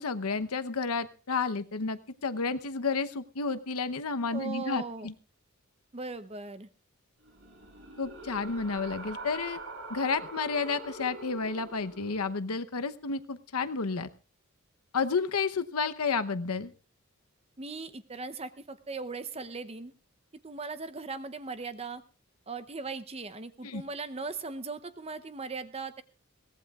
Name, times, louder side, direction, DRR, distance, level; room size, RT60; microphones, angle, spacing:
voice 1, 0.0-5.1 8.0-9.6 9.9-14.1 14.9-16.7 23.6-23.8, left 4 dB, 90° left, 10 dB, 0.9 m, -31 dB
voice 2, 4.3-5.1 5.9-6.7 17.6-19.9 20.4-22.0 22.5-26.0, right 4 dB, 25° right, 12 dB, 0.7 m, -38 dB
sound 1, 7.2-12.4, right 2 dB, 65° right, 4.3 m, -44 dB
22.5 x 18.0 x 2.4 m, 0.35 s
head